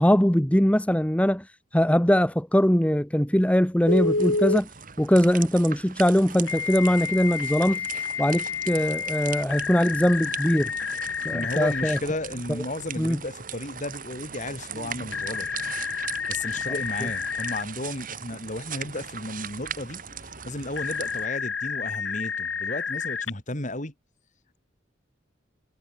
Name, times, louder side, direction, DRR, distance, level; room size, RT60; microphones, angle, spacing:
voice 1, 0.0-1.5 1.7-4.7 5.0-7.9 8.2-10.7 11.2-12.0 13.0-13.2, equal, 5° left, 1.3 m, -21 dB
Telephone, 3.9-4.6 6.5-12.0 15.1-17.6 20.8-23.3, left 5 dB, 85° left, 7.2 m, -29 dB
sound 1, 3.9-21.3, right 7 dB, 45° right, 4.1 m, -39 dB
voice 2, 11.2-15.5 16.3-20.0 20.4-23.9, left 1 dB, 40° left, 3.5 m, -33 dB
head